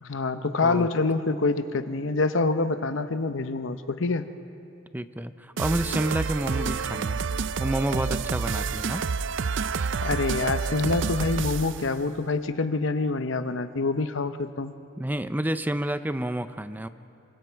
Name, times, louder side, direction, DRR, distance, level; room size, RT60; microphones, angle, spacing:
voice 1, 0.0-4.2 10.0-14.7, left 3 dB, 70° left, 10 dB, 0.8 m, -26 dB
voice 2, 4.9-7.2 7.6-9.0 15.0-16.9, right 1 dB, 10° right, 11 dB, 0.5 m, -29 dB
sound 1, 5.6-11.9, right 5 dB, 65° right, 0.5 m, -29 dB
27.5 x 23.5 x 4.6 m, 2.9 s
head